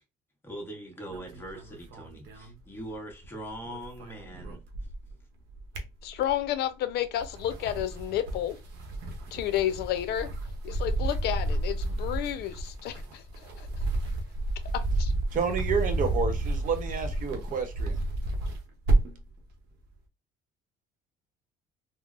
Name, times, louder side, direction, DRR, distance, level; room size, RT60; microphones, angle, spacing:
voice 1, 0.4-4.6, right 1 dB, 15° left, 1.1 m, -41 dB
sound 1, 1.1-3.3 3.5-5.1 5.5-6.5 7.1-19.3, right 2 dB, 80° right, 0.8 m, -31 dB
voice 2, 6.0-8.6 9.3-10.3 10.6-13.2 13.6-13.7 14.7-15.1, left 12 dB, 75° left, 0.5 m, -31 dB
voice 3, 15.3-18.0, right 5 dB, 50° right, 0.9 m, -29 dB
3.7 x 2.0 x 2.4 m
cardioid pair, 110°, 17 cm